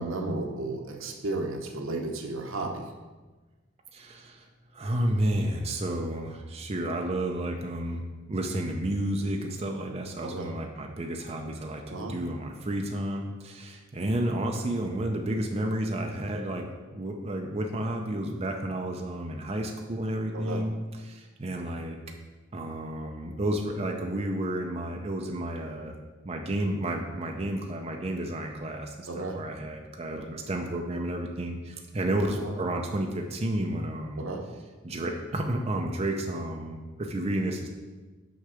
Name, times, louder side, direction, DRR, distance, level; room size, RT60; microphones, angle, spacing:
voice 1, 0.0-2.8 10.2-10.5 11.9-12.2 20.3-20.6 29.1-29.4 32.4-32.5 34.2-34.4, right 2 dB, 80° right, 3 dB, 1.0 m, -33 dB
voice 2, 3.9-4.5 4.7-20.7 21.0-22.0 22.5-26.0 26.2-34.2 34.8-37.7, right 1 dB, 30° right, 2 dB, 0.6 m, -31 dB
6.5 x 5.7 x 4.9 m, 1.3 s
head